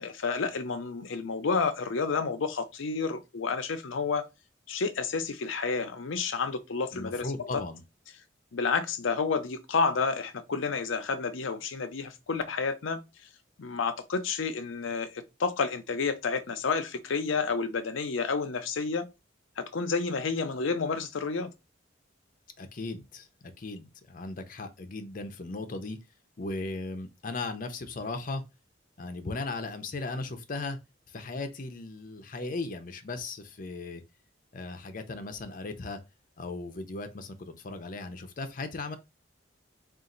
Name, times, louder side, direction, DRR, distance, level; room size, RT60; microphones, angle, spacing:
voice 1, 0.0-4.2 4.7-7.3 8.5-13.0 13.6-19.1 19.6-21.5, left 4 dB, 90° left, 0.6 m, -30 dB
voice 2, 6.9-7.8 22.6-26.0 26.4-28.4 29.0-30.8 31.1-34.0 34.5-36.0 36.4-39.0, left 3 dB, 45° left, 0.6 m, -37 dB
4.0 x 2.5 x 3.8 m
head